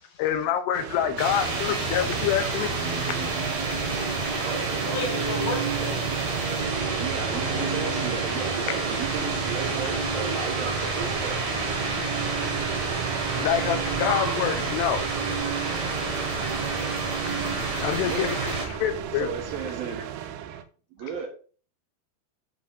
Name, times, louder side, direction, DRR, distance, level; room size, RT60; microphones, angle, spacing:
voice 1, 0.2-2.8 13.4-15.0 17.8-19.3, left 10 dB, 85° left, 2.8 m, -26 dB
sound 1, 0.7-20.6, right 10 dB, 85° right, 2.5 m, -36 dB
sound 2, 1.2-18.7, right 4 dB, 50° right, 2.3 m, -28 dB
voice 2, 4.2-6.2, left 3 dB, 60° left, 2.8 m, -34 dB
voice 3, 6.9-11.7 18.0-18.3 19.2-20.0 20.9-21.3, right 6 dB, 65° right, 2.7 m, -34 dB
sound 3, 9.1-19.6, left 1 dB, 10° right, 2.2 m, -44 dB
10.0 x 5.2 x 2.6 m
omnidirectional pair, 4.9 m